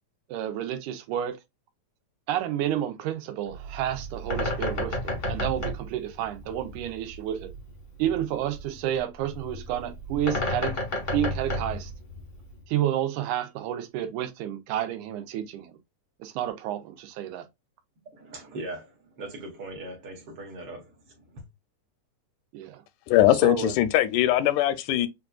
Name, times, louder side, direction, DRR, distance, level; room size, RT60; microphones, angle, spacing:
voice 1, 0.3-1.4 2.3-7.5 8.0-10.8 11.1-11.9 12.7-15.8 16.2-17.5 22.5-22.8 23.3-23.8, right 11 dB, 85° right, 2.1 m, -30 dB
Bird, 3.5-12.6, left 1 dB, 55° left, 0.8 m, -32 dB
voice 2, 18.1-20.9 21.2-21.5, right 2 dB, 60° right, 1.6 m, -40 dB
voice 3, 23.1-25.1, left 13 dB, 85° left, 2.0 m, -21 dB
6.7 x 2.4 x 2.3 m
omnidirectional pair, 3.5 m